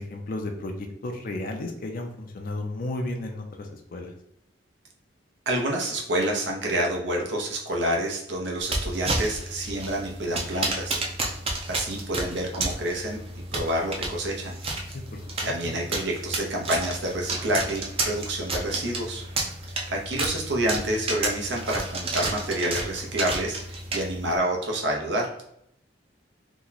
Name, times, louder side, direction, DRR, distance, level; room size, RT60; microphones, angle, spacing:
voice 1, 0.0-4.1 14.9-15.5, left 2 dB, 50° left, 3 dB, 0.5 m, -34 dB
voice 2, 5.5-11.0 11.7-13.2 13.5-14.5 15.4-19.2 19.9-23.6 23.9-25.3, right 1 dB, 75° right, 0 dB, 0.8 m, -28 dB
sound 1, 8.6-24.4, right 2 dB, 35° right, 0.6 m, -32 dB
3.0 x 2.2 x 3.8 m, 0.74 s
head